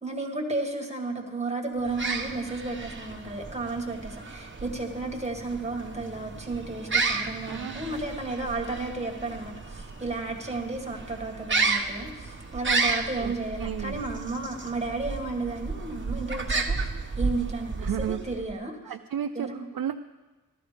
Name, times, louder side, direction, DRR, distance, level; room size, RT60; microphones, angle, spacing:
voice 1, 0.0-16.8 17.2-18.8 19.4-19.6, right 3 dB, 20° right, 2 dB, 1.9 m, -33 dB
sound 1, 1.8-18.5, right 4 dB, 35° right, 1.1 m, -32 dB
voice 2, 7.5-8.0 13.2-14.0 17.8-18.2 18.8-19.5 19.7-20.0, right 9 dB, 75° right, 6 dB, 0.5 m, -33 dB
14.5 x 12.5 x 5.1 m, 1.2 s
wide cardioid pair, 105°, 35 cm